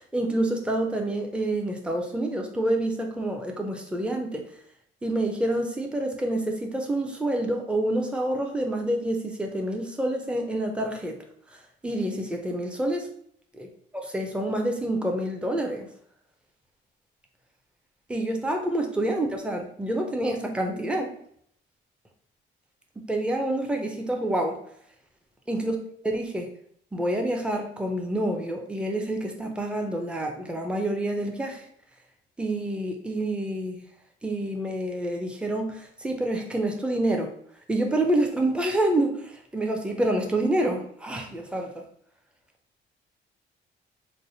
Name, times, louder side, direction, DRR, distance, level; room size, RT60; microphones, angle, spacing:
voice 1, 0.1-4.4 5.0-11.2 11.8-13.1 13.5-13.7 14.0-15.9 18.1-21.1 23.0-24.6 25.5-25.8 26.0-26.5 26.9-31.6 32.4-33.8 34.2-37.3 37.7-41.8, right 1 dB, 5° right, 2 dB, 0.6 m, -27 dB
3.3 x 2.1 x 4.0 m, 0.65 s
cardioid pair, 90°, 20 cm